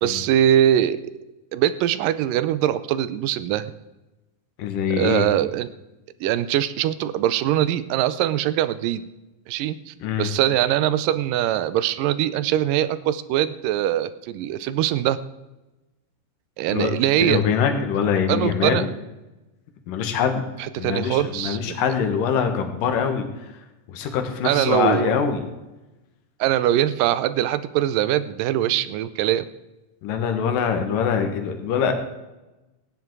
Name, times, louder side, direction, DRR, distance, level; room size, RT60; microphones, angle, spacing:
voice 1, 0.0-1.0 1.5-3.7 4.9-5.7 6.2-9.0 9.5-15.2 16.6-17.4 18.3-18.9 20.6-21.8 24.4-25.1 26.4-29.5, right 12 dB, 80° right, 14 dB, 2.3 m, -22 dB
voice 2, 4.6-5.3 10.0-10.3 16.7-18.9 19.9-20.5 20.8-23.3 23.9-25.4 30.0-31.9, left 7 dB, 75° left, 6 dB, 3.1 m, -23 dB
16.5 x 10.0 x 4.7 m, 1.0 s
omnidirectional pair, 3.9 m